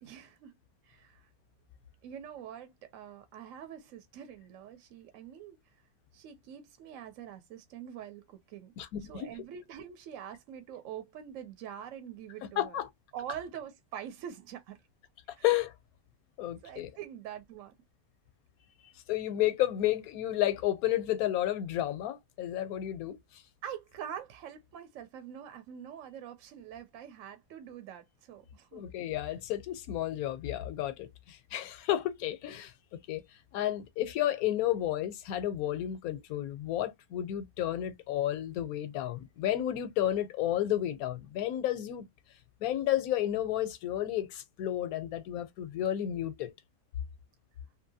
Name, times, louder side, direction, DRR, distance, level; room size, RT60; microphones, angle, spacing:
voice 1, 0.0-0.5 0.8-1.3 2.0-5.6 6.1-8.7 9.1-12.8 13.1-14.8 15.4-15.5 16.6-17.7 23.6-28.8, right 9 dB, 70° right, 0.9 m, -45 dB
voice 2, 8.8-9.3 12.6-12.9 15.4-15.7 16.4-16.9 19.1-23.4 28.7-33.2 33.5-42.1 42.6-46.5, left 12 dB, 85° left, 1.1 m, -32 dB
2.7 x 2.5 x 2.6 m
omnidirectional pair, 1.5 m